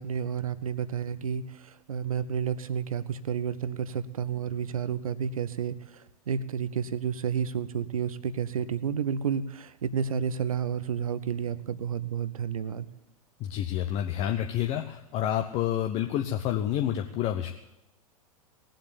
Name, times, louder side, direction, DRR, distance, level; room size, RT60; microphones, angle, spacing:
voice 1, 0.0-12.9, right 7 dB, 65° right, 15 dB, 0.9 m, -31 dB
voice 2, 13.4-17.5, left 11 dB, 35° left, 5 dB, 0.9 m, -29 dB
19.0 x 7.8 x 8.7 m, 0.91 s
figure-of-eight pair, 90°, 19 cm